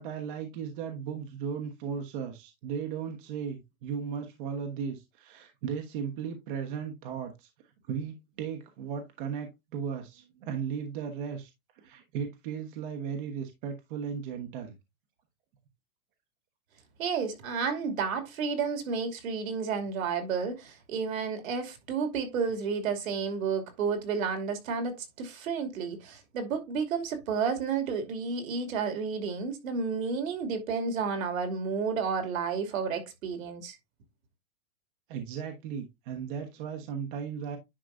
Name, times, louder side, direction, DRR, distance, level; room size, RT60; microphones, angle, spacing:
voice 1, 0.0-7.5 7.9-11.5 11.8-14.7 35.1-37.6, right 7 dB, 35° right, 1.2 m, -36 dB
voice 2, 17.0-33.8, right 5 dB, 65° right, 2.7 m, -31 dB
10.0 x 5.6 x 2.6 m
supercardioid pair, 160°, 43 cm